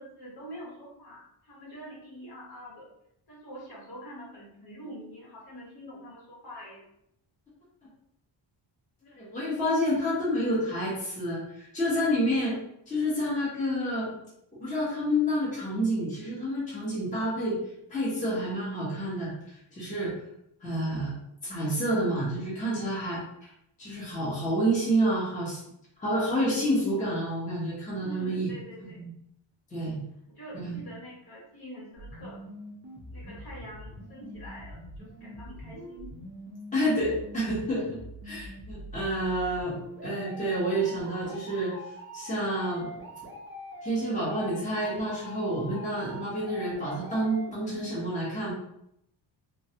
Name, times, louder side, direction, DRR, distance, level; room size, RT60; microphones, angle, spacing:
voice 1, 0.0-2.9 3.3-6.9 28.0-29.0 30.3-32.4 33.1-36.1, equal, 50° left, -5 dB, 1.2 m, -45 dB
voice 2, 9.2-12.6 12.9-14.2 14.6-17.6 17.9-19.3 19.7-20.1 20.6-21.1 21.4-23.5 23.8-25.6 26.0-28.5 28.8-29.1 29.7-30.0 30.5-30.8 36.7-41.7 42.1-42.9 43.8-48.5, equal, 15° left, -8 dB, 0.8 m, -29 dB
sound 1, 32.0-48.0, equal, 25° right, 0.4 m, -44 dB
3.2 x 2.3 x 2.7 m, 0.76 s
wide cardioid pair, 180°, 48 cm